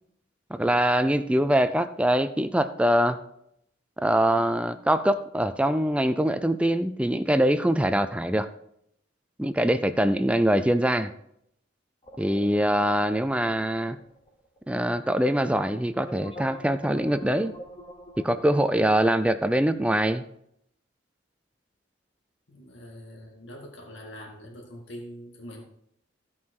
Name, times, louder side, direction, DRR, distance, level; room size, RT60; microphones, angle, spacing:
voice 1, 0.5-3.2 4.0-8.5 9.4-11.1 12.2-14.0 14.7-17.5 18.2-20.2, right 1 dB, 5° right, 11 dB, 0.4 m, -23 dB
sound 1, 12.0-14.6 14.8-14.9 15.9-18.6, equal, 25° left, 0.9 m, -44 dB
voice 2, 22.5-25.6, equal, 70° left, 0 dB, 2.2 m, -43 dB
15.0 x 5.6 x 4.7 m, 0.74 s
head